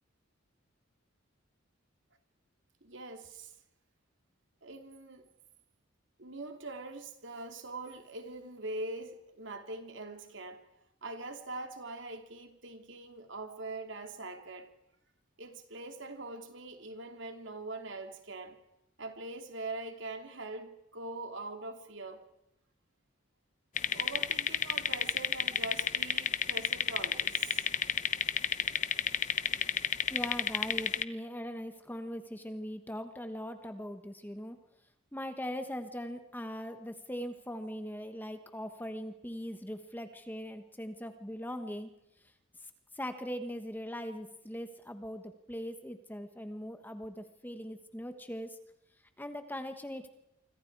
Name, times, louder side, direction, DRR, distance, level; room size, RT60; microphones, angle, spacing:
voice 1, 2.8-3.5 4.6-5.3 6.2-10.7 11.0-14.7 15.4-18.6 19.0-22.2 23.9-27.7, right 2 dB, 60° right, 2.9 m, -43 dB
sound 1, 23.8-31.0, left 8 dB, 35° left, 0.9 m, -31 dB
voice 2, 30.1-34.6 35.1-41.9 42.6-48.6 49.2-50.1, equal, 10° left, 1.3 m, -40 dB
27.0 x 26.0 x 4.8 m
head